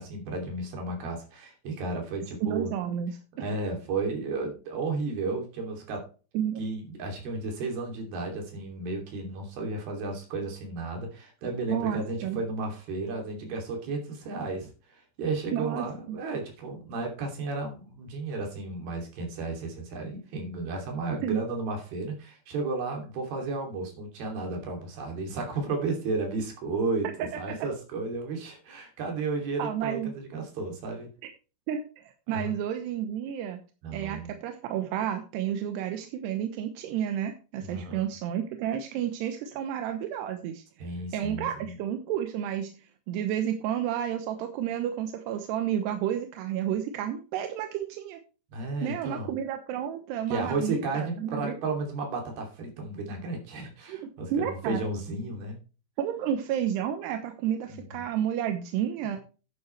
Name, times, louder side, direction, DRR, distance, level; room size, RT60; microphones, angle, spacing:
voice 1, 0.0-2.7 3.4-6.1 6.6-31.1 32.3-32.5 33.8-34.4 37.6-38.0 40.8-41.7 48.5-49.4 50.3-55.6 57.7-58.0 59.1-59.2, right 3 dB, 70° right, 2 dB, 4.8 m, -33 dB
voice 2, 2.4-3.2 6.3-6.6 11.7-12.4 15.5-16.2 21.2-21.4 27.2-27.3 29.6-30.1 31.7-33.6 33.9-40.6 41.1-42.7 43.1-48.2 48.8-51.5 53.9-54.8 56.0-59.2, right 10 dB, 85° right, 6 dB, 3.1 m, -31 dB
11.5 x 9.4 x 3.3 m, 0.35 s
omnidirectional pair, 4.7 m